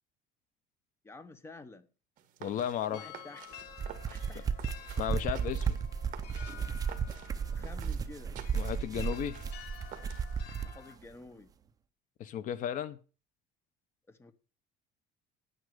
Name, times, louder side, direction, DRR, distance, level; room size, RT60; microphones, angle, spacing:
voice 1, 1.0-1.9 2.8-3.5 4.1-4.5 7.5-8.4 10.6-11.5 14.1-14.3, left 3 dB, 15° left, 1.0 m, -50 dB
sound 1, 2.2-10.6, right 11 dB, 50° right, 1.7 m, -51 dB
voice 2, 2.4-3.0 5.0-5.8 8.5-9.4 12.2-13.0, left 10 dB, 45° left, 0.8 m, -34 dB
sound 2, 2.9-11.0, left 9 dB, 65° left, 1.6 m, -51 dB
sound 3, 3.6-10.8, right 6 dB, 20° right, 0.6 m, -34 dB
9.8 x 9.7 x 6.5 m
cardioid pair, 180°, 18 cm